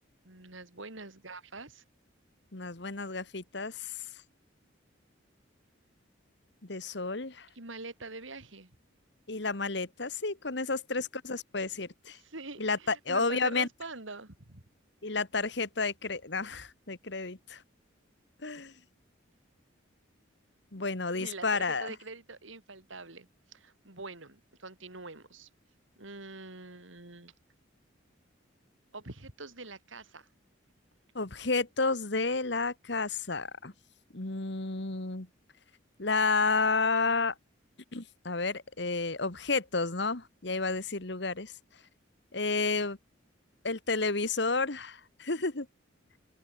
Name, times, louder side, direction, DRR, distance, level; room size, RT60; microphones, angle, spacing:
voice 1, 0.2-1.8 7.5-8.8 12.0-14.6 21.2-25.5 26.0-27.3 28.9-30.3, right 3 dB, 75° right, 3.6 m, -45 dB
voice 2, 2.5-3.9 6.6-7.5 9.3-12.2 12.6-13.7 15.0-17.6 18.4-18.7 20.7-21.9 31.1-33.7 34.1-35.3 36.0-37.3 37.9-41.5 42.3-43.0 43.6-45.7, left 3 dB, 60° left, 1.6 m, -31 dB
open air
head